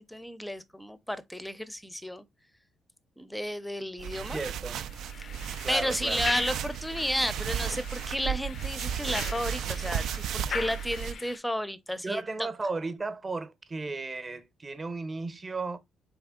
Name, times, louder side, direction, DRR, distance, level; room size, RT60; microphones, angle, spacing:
voice 1, 0.0-2.2 3.2-4.4 5.2-5.3 5.7-12.5, equal, 5° left, 0.6 m, -32 dB
sound 1, 4.0-11.1, right 9 dB, 75° right, 0.4 m, -34 dB
voice 2, 4.3-4.8 5.6-6.2 12.0-15.8, right 3 dB, 30° right, 0.8 m, -34 dB
sound 2, 4.8-11.4, left 7 dB, 55° left, 0.4 m, -40 dB
4.1 x 3.4 x 3.6 m
cardioid pair, 90°, 0 cm